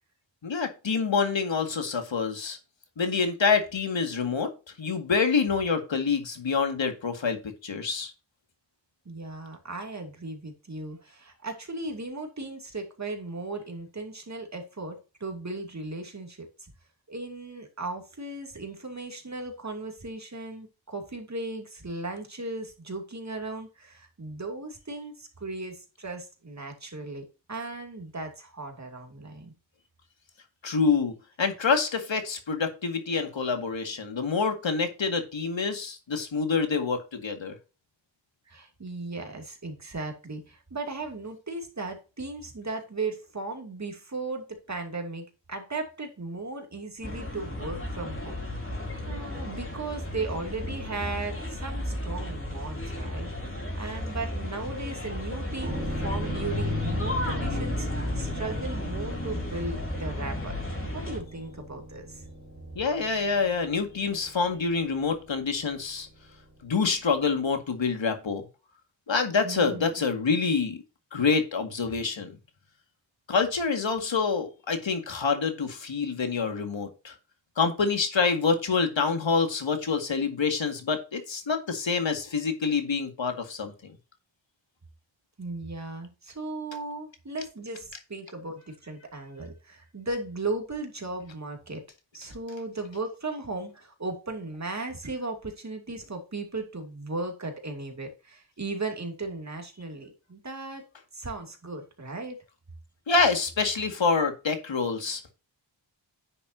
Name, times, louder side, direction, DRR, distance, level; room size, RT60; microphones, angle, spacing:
voice 1, 0.4-2.6 3.0-8.1 30.6-37.6 62.8-66.1 66.6-68.5 69.1-70.8 71.1-72.4 73.3-77.1 77.6-84.0 103.1-105.2, left 5 dB, 75° left, 6 dB, 2.1 m, -27 dB
voice 2, 9.0-16.7 17.1-29.5 38.5-60.6 60.9-62.3 69.4-69.9 85.4-91.8 92.1-100.8 101.1-102.4, right 3 dB, 35° right, 3 dB, 2.6 m, -36 dB
sound 1, 47.0-61.2, left 1 dB, 25° left, 3.9 m, -33 dB
sound 2, 55.6-67.2 67.5-67.6, right 1 dB, 20° right, 3.7 m, -39 dB
9.9 x 7.0 x 2.8 m, 0.30 s
wide cardioid pair, 105°, 46 cm